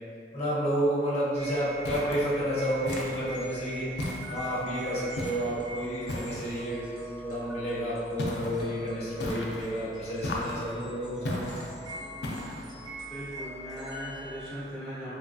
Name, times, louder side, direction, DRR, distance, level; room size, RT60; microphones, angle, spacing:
voice 1, 0.3-3.9 4.3-6.8 7.2-11.4, equal, 35° left, -8 dB, 0.7 m, -30 dB
sound 1, 1.3-14.4, right 2 dB, 25° right, 0.5 m, -43 dB
sound 2, 1.8-2.3 2.9-3.4 4.0-4.6 5.2-5.6 6.1-6.6 8.2-8.7 9.2-9.7 10.2-10.7 11.2-11.7 12.2-12.7, left 1 dB, 70° left, 0.4 m, -35 dB
voice 2, 13.1-15.1, equal, 5° right, -14 dB, 1.1 m, -39 dB
3.1 x 2.3 x 2.5 m, 2.4 s
head